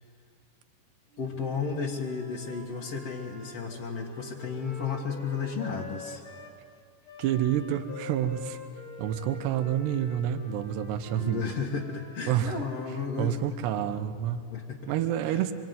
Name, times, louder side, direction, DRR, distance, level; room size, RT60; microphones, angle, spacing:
Wind instrument woodwind instrument, 1.1-6.6 7.0-12.9, left 2 dB, 5° left, 1.5 m, -46 dB
voice 1, 1.2-6.2 11.1-13.3 14.5-14.9 15.3-15.4, left 5 dB, 55° left, -2 dB, 1.8 m, -33 dB
voice 2, 7.2-8.6 9.0-11.4 12.3-12.6 13.2-14.5 14.9-15.5, right 10 dB, 75° right, 9 dB, 3.1 m, -28 dB
25.5 x 23.5 x 9.4 m, 2.4 s
omnidirectional pair, 5.1 m